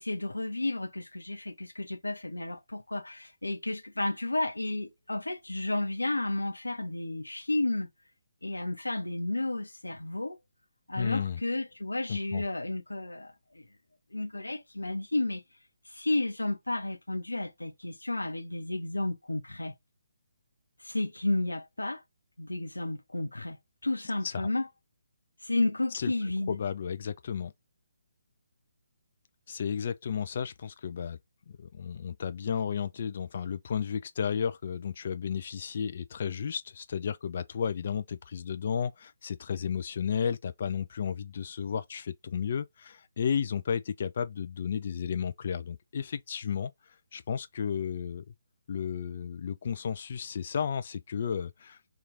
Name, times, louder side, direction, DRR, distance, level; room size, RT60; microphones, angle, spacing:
voice 1, 0.0-7.9 8.4-10.4 10.9-13.3 14.1-15.4 15.9-19.7 20.8-22.0 22.4-24.7 25.4-26.6, left 2 dB, 80° left, 0.7 m, -32 dB
voice 2, 10.9-11.4 12.1-12.4 24.2-24.5 25.9-26.1 26.5-27.5 29.5-31.2 31.5-46.7 47.1-48.2 48.7-51.9, left 7 dB, 45° left, 0.4 m, -33 dB
3.0 x 2.4 x 3.6 m
figure-of-eight pair, 140°, 0 cm